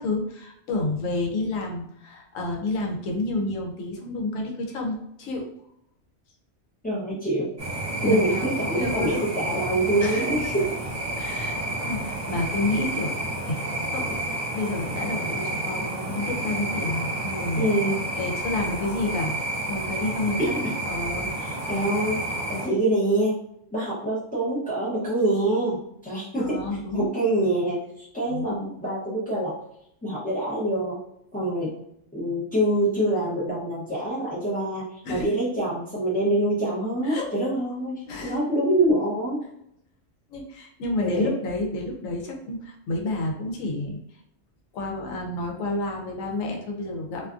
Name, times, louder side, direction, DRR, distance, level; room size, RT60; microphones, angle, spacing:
voice 1, 0.0-5.5 8.0-8.5 8.7-9.2 10.0-10.4 11.2-13.1 13.5-17.7 18.2-19.3 19.7-20.4 20.8-21.3 26.4-27.1 28.3-28.6 35.0-35.2 37.0-37.2 38.1-38.4 40.3-44.0 44.7-47.3, left 2 dB, 90° left, 0 dB, 1.0 m, -30 dB
voice 2, 6.8-7.5 8.0-10.6 17.6-18.0 20.4-20.7 21.4-22.2 22.5-23.4 23.7-26.6 26.9-29.5 30.0-31.0 31.3-31.7 32.1-39.4 41.0-41.3, right 1 dB, 10° left, -10 dB, 0.4 m, -25 dB
sound 1, 7.6-22.7, right 1 dB, 40° right, 0.9 m, -30 dB
2.6 x 2.3 x 2.4 m, 0.74 s
omnidirectional pair, 1.3 m